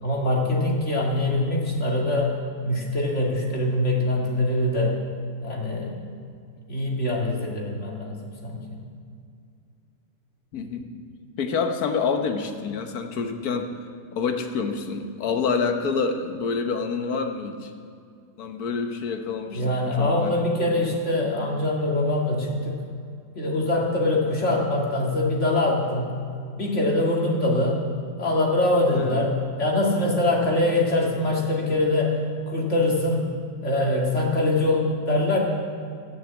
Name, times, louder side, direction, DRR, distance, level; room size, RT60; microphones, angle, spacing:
voice 1, 0.0-2.4 2.6-5.0 5.4-6.2 6.7-8.8 19.5-22.8 23.3-26.1 26.6-27.8 28.2-32.2 32.5-33.3 33.6-35.4, left 1 dB, 50° left, -2 dB, 2.5 m, -23 dB
voice 2, 10.5-10.9 11.4-13.7 14.1-17.7 18.4-19.6 20.0-20.3 28.9-29.1, left 5 dB, 75° left, 5 dB, 1.6 m, -27 dB
14.0 x 7.0 x 8.1 m, 2.4 s
omnidirectional pair, 1.6 m